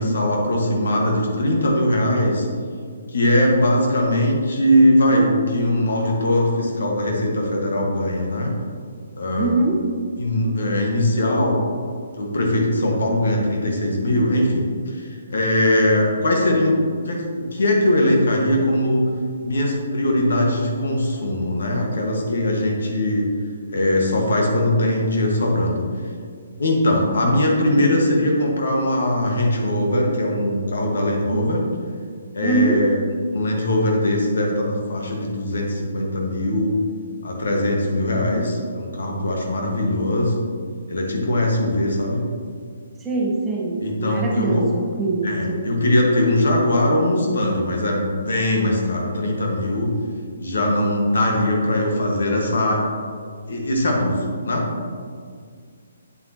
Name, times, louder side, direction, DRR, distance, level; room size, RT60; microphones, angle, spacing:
voice 1, 0.0-2.4 3.1-8.5 9.1-9.6 10.2-11.6 12.2-14.6 14.9-19.0 19.4-23.3 23.7-25.8 26.6-31.6 32.3-33.0 33.3-36.7 37.2-40.4 40.9-42.2 43.8-44.6 45.2-49.9 50.4-52.8 53.5-54.7, left 1 dB, 65° left, 0 dB, 1.6 m, -20 dB
voice 2, 9.4-9.8 31.3-31.5 32.4-32.8 43.0-45.7, right 3 dB, 15° right, -3 dB, 1.2 m, -23 dB
8.7 x 7.7 x 3.0 m, 2.1 s
figure-of-eight pair, 135°, 0 cm